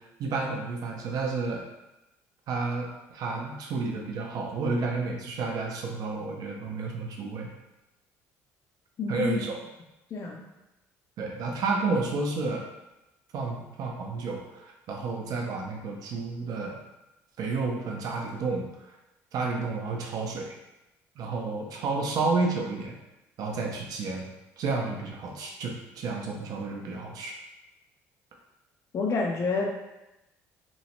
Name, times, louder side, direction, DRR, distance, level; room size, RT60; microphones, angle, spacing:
voice 1, 0.0-1.6 2.5-7.5 9.1-9.6 11.2-12.7 13.3-16.8 17.4-18.9 19.3-20.5 21.2-22.9 23.4-24.3 24.6-27.3, right 3 dB, 60° right, 1 dB, 0.5 m, -31 dB
voice 2, 9.0-9.4 10.1-10.5 28.9-29.7, left 4 dB, 45° left, -1 dB, 0.4 m, -28 dB
3.0 x 2.0 x 2.9 m, 0.96 s
supercardioid pair, 70°, 7 cm